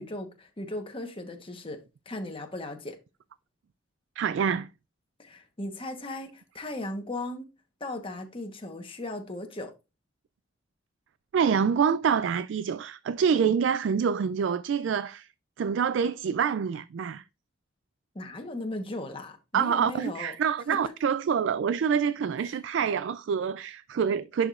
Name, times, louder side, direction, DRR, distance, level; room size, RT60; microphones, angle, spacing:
voice 1, 0.0-1.8 2.1-2.9 5.2-7.5 7.8-9.7 18.1-20.3 20.7-20.8 22.5-22.6, left 1 dB, 30° left, 1.1 m, -37 dB
voice 2, 4.2-4.7 11.3-15.3 15.6-17.2 19.5-24.5, right 7 dB, 65° right, 0.3 m, -26 dB
10.5 x 4.9 x 2.4 m
head